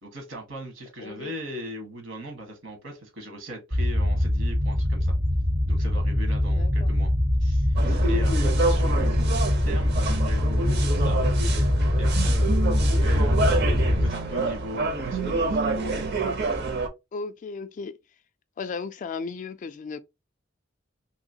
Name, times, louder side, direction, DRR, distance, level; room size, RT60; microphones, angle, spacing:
voice 1, 0.0-5.1 5.7-7.1 7.4-9.4 9.7-11.2 12.0-16.0, right 1 dB, 75° right, 1.3 m, -39 dB
voice 2, 1.0-1.3 6.6-6.9 17.1-17.9 18.6-20.0, left 4 dB, 40° left, 0.3 m, -35 dB
sound 1, 3.7-14.1, left 1 dB, 25° right, 0.4 m, -23 dB
sound 2, 7.8-16.9, right 3 dB, 55° right, 0.7 m, -28 dB
3.0 x 2.8 x 2.7 m
head